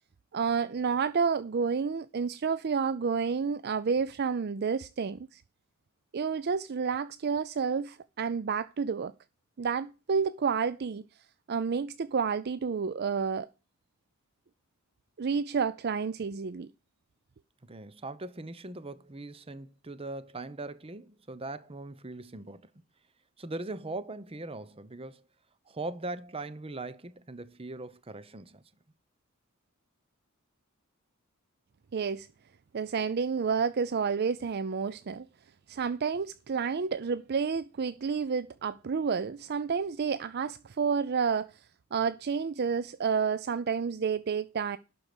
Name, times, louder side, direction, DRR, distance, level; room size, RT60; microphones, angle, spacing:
voice 1, 0.3-5.4 6.1-9.1 9.6-11.0 11.5-13.5 15.2-16.7 31.9-32.3 32.7-35.3 35.7-41.5 41.9-44.8, right 5 dB, 50° right, 0.4 m, -30 dB
voice 2, 17.6-22.7 23.4-25.3 25.7-28.6, right 2 dB, 25° right, 0.8 m, -40 dB
11.5 x 4.7 x 6.7 m
head